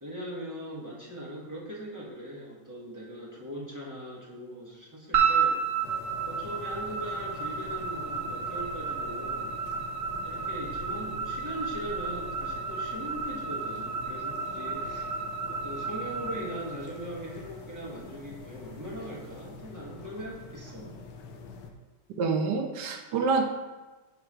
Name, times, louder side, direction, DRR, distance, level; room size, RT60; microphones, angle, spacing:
voice 1, 0.0-5.6 6.2-9.5 10.2-15.1 15.5-21.0, right 1 dB, 15° right, -6 dB, 0.8 m, -40 dB
sound 1, 5.1-17.4, right 6 dB, 50° right, 1.5 m, -32 dB
sound 2, 5.8-21.7, left 5 dB, 80° left, 1.6 m, -45 dB
voice 2, 22.2-23.4, right 4 dB, 70° right, 4 dB, 1.0 m, -27 dB
6.8 x 3.2 x 6.0 m, 1.2 s
omnidirectional pair, 2.4 m